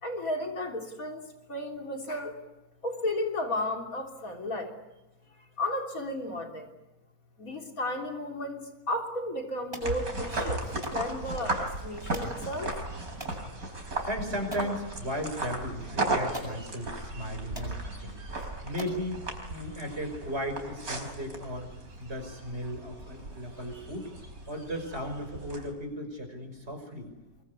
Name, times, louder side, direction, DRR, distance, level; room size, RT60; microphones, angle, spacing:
voice 1, 0.0-2.4 2.8-4.8 5.4-6.7 7.4-12.7, left 1 dB, 60° left, 3 dB, 3.8 m, -34 dB
sound 1, 9.7-9.9 10.8-11.0 12.1-12.4 13.2-13.4 14.0-14.1 14.5-14.8 15.8-15.9 16.3-16.6 17.2-17.3 17.5-17.8 18.4-18.5 18.8-19.0, right 1 dB, 15° right, 8.1 m, -40 dB
sound 2, 9.8-25.7, right 2 dB, 70° right, 5.0 m, -36 dB
voice 2, 13.8-18.2 18.6-19.2 19.5-21.7 22.0-24.1 24.5-27.1, equal, 40° right, 5 dB, 5.9 m, -36 dB
24.0 x 23.5 x 9.8 m, 0.99 s
omnidirectional pair, 1.6 m